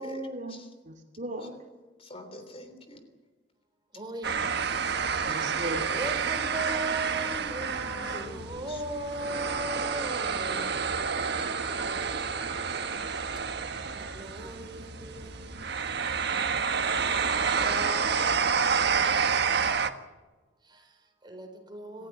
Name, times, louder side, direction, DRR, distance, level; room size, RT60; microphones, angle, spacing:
voice 1, 0.0-1.6 5.3-5.9, right 1 dB, 45° right, 4 dB, 2.6 m, -37 dB
voice 2, 2.0-3.0 5.3-5.5 7.8-8.8 11.7-12.4 22.0-22.1, left 1 dB, 30° left, 8 dB, 3.3 m, -47 dB
voice 3, 3.9-4.6 5.2-5.5 5.9-10.9 11.7-11.8 14.0-15.6 17.0-17.2 17.5-19.8 20.6-22.1, right 2 dB, 25° right, 5 dB, 4.4 m, -39 dB
sound 1, 4.2-19.9, right 6 dB, 65° right, 1.4 m, -29 dB
28.0 x 15.5 x 9.1 m, 1.3 s
head